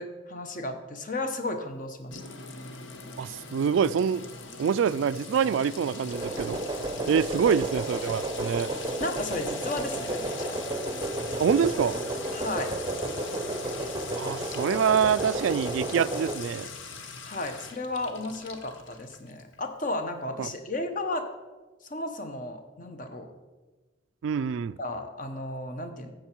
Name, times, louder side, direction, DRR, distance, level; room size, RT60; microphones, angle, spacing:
voice 1, 0.0-2.2 9.0-10.6 12.3-12.7 17.2-21.3 21.9-23.3 24.8-26.1, left 2 dB, 40° left, 1.0 m, -34 dB
Sink (filling or washing) / Trickle dribble / Fill (with liquid), 2.1-19.5, left 5 dB, 70° left, 1.0 m, -41 dB
voice 2, 3.2-4.3 4.6-6.6 7.1-8.7 11.4-12.0 14.1-16.7 20.4-20.5 24.2-24.8, right 7 dB, 70° right, 0.3 m, -25 dB
sound 1, 6.1-16.4, right 1 dB, 20° right, 0.6 m, -32 dB
13.0 x 7.8 x 4.5 m
head